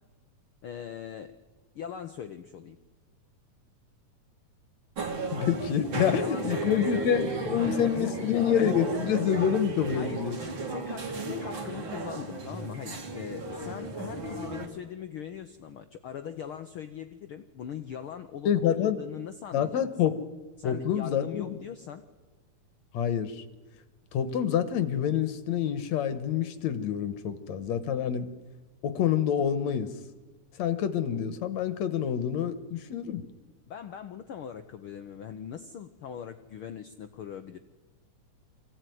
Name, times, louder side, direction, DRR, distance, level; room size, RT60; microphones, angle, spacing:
voice 1, 0.6-1.3 1.7-2.8 6.0-7.1 7.5-8.4 9.9-10.2 10.7-19.8 20.6-22.0 33.7-37.6, left 8 dB, 85° left, 9 dB, 1.2 m, -41 dB
sound 1, 5.0-14.7, right 3 dB, 40° right, 2.8 m, -34 dB
voice 2, 5.3-10.4 18.5-19.0 19.5-20.2 20.6-21.6 22.9-23.4 24.1-28.3 28.8-29.9 30.6-33.2, left 9 dB, 65° left, 11 dB, 2.3 m, -27 dB
24.5 x 16.5 x 9.4 m, 1.3 s
omnidirectional pair, 3.7 m